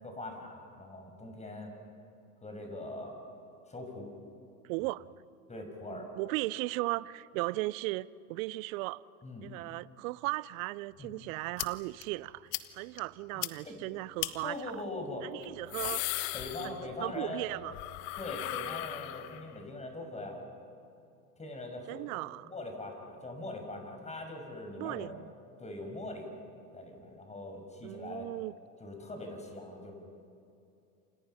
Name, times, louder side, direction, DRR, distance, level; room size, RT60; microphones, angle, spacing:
voice 1, 0.0-1.7 2.4-3.2 3.7-4.1 5.5-6.1 9.2-9.5 11.0-11.1 13.3-13.8 14.4-15.3 16.3-17.5 18.2-20.4 21.4-22.2 22.5-25.2 25.6-26.3 26.7-28.3 28.8-29.9, left 2 dB, 15° left, 6.4 m, -42 dB
voice 2, 4.6-5.1 5.9-9.0 9.4-14.6 15.2-16.0 16.6-17.7 21.9-22.5 24.8-25.3 27.8-28.5, right 20 dB, 60° right, 0.7 m, -36 dB
sound 1, 11.6-11.7 12.0-12.1 12.5-12.7 13.0-13.1 13.4-13.5 14.2-14.3 15.4-17.1 17.4-19.6, left 17 dB, 60° left, 1.4 m, -37 dB
29.0 x 27.5 x 5.7 m
hypercardioid pair, 100°, 45 cm